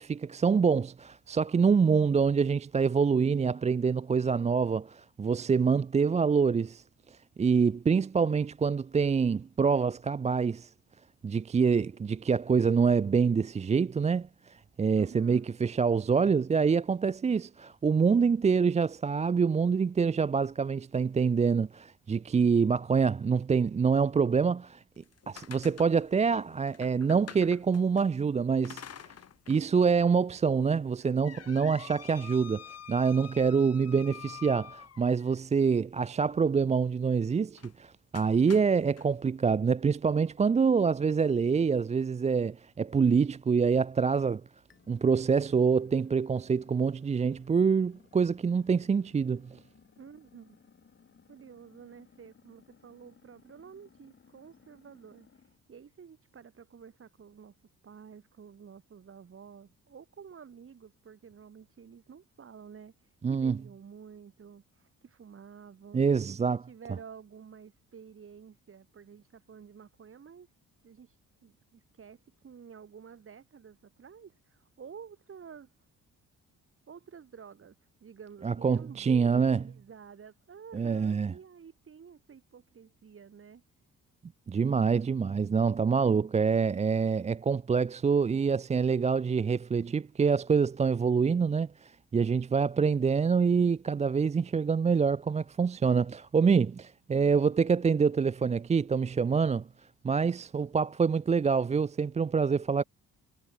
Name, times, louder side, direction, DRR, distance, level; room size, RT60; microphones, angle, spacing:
voice 1, 0.0-6.8 7.1-10.7 11.2-24.8 25.3-29.1 29.5-44.4 44.9-49.6 63.2-63.6 65.9-66.6 78.4-79.6 80.7-81.3 84.5-99.7 100.0-102.8, right 5 dB, 25° right, 0.5 m, -26 dB
voice 2, 15.0-15.5 33.6-34.0 50.0-50.6 51.3-55.3 55.7-57.5 57.8-62.9 63.3-66.1 66.4-70.5 70.8-71.1 71.4-75.7 76.9-77.8 78.0-83.6 86.0-86.6, right 7 dB, 45° right, 5.2 m, -50 dB
sound 1, 25.0-28.1 28.6-29.6 30.0-30.1 30.7-35.4 37.5-37.8 38.1-39.1, left 9 dB, 55° left, 3.0 m, -48 dB
sound 2, 44.7-55.6, left 6 dB, 40° left, 4.1 m, -61 dB
cardioid pair, 90°, 30 cm